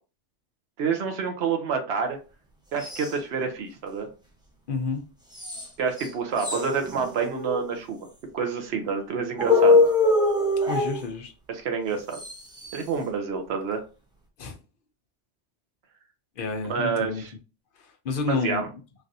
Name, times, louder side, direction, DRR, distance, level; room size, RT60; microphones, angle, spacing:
voice 1, 0.8-2.2 2.7-4.1 5.8-8.1 8.3-9.8 11.5-12.2 12.7-13.8 16.7-17.3 18.3-18.7, right 5 dB, 65° right, 0.9 m, -28 dB
sound 1, 2.8-3.2 5.3-5.7 6.0-6.1 6.4-7.7 9.4-11.0 12.1-12.8, left 3 dB, 5° right, 0.4 m, -23 dB
voice 2, 4.7-5.0 10.7-11.3 12.8-12.9 14.4-14.6 16.4-17.2 17.8-18.7, left 4 dB, 55° left, 0.7 m, -30 dB
3.2 x 2.5 x 2.5 m
omnidirectional pair, 1.2 m